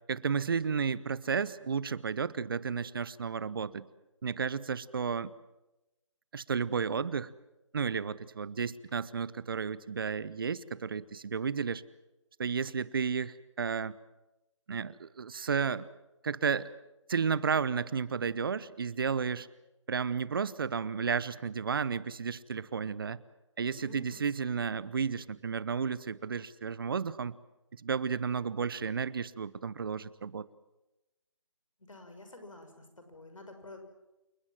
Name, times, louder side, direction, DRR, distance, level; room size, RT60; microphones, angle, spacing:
voice 1, 0.1-3.9 4.2-5.3 6.3-7.3 7.7-11.8 12.4-14.0 14.7-15.9 16.2-16.7 17.1-19.5 19.9-23.2 23.6-27.4 27.7-30.5, right 6 dB, 45° right, 20 dB, 0.9 m, -32 dB
voice 2, 23.8-24.5 31.8-33.8, left 2 dB, 80° left, 6 dB, 6.4 m, -50 dB
28.5 x 19.0 x 7.5 m, 0.99 s
figure-of-eight pair, 155°, 16 cm